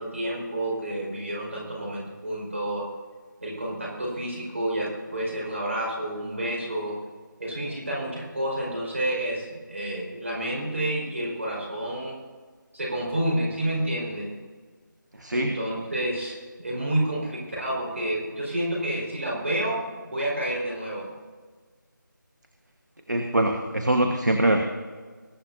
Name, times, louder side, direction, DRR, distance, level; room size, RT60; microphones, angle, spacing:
voice 1, 0.0-2.9 3.4-7.0 7.4-12.2 12.7-14.3 15.3-21.1, right 1 dB, 40° right, -4 dB, 4.7 m, -29 dB
voice 2, 15.1-15.6 23.1-24.6, right 1 dB, 60° right, 4 dB, 1.4 m, -23 dB
22.0 x 10.5 x 2.7 m, 1.5 s
figure-of-eight pair, 165°, 11 cm